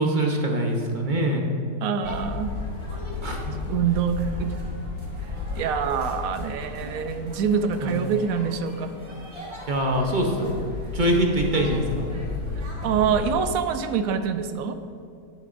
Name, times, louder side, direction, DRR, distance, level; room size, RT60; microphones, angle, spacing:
voice 1, 0.0-1.5 3.2-3.5 7.8-8.0 9.7-12.0, right 1 dB, 45° right, 1 dB, 0.7 m, -24 dB
voice 2, 1.8-2.5 3.7-4.6 5.5-8.9 12.8-14.8, right 7 dB, 70° right, 9 dB, 0.9 m, -25 dB
sound 1, 2.0-13.5, left 4 dB, 75° left, 1.2 m, -34 dB
sound 2, 2.0-13.3, equal, 20° right, 1.4 m, -42 dB
10.5 x 9.2 x 2.5 m, 2.5 s
omnidirectional pair, 1.8 m